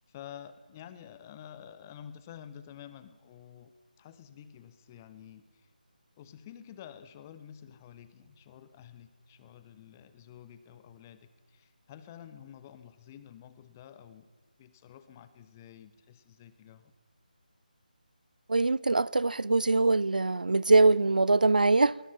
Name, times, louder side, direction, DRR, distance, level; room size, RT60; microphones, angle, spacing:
voice 1, 0.1-3.7 4.0-5.7 6.2-14.3 14.6-16.9, left 9 dB, 20° left, 1.1 m, -50 dB
voice 2, 18.5-22.0, right 3 dB, 65° right, 0.6 m, -23 dB
29.5 x 21.0 x 5.8 m
figure-of-eight pair, 155°, 5 cm